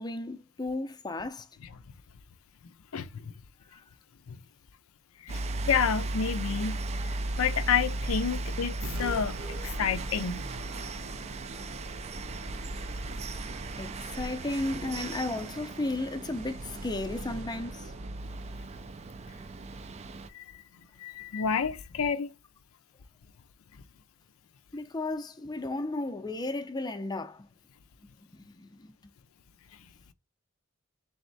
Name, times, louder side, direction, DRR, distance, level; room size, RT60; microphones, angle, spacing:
voice 1, 0.0-1.5 13.8-17.9 24.7-27.5 28.4-28.9, left 2 dB, 20° left, 0.6 m, -34 dB
sound 1, 5.3-20.3, right 2 dB, 30° right, 0.4 m, -36 dB
voice 2, 5.7-6.8 7.4-9.4 9.6-10.5 20.3-20.4 21.0-22.3, left 7 dB, 85° left, 0.5 m, -29 dB
sound 2, 8.8-19.7, equal, 90° right, 1.2 m, -43 dB
3.5 x 3.2 x 3.9 m
head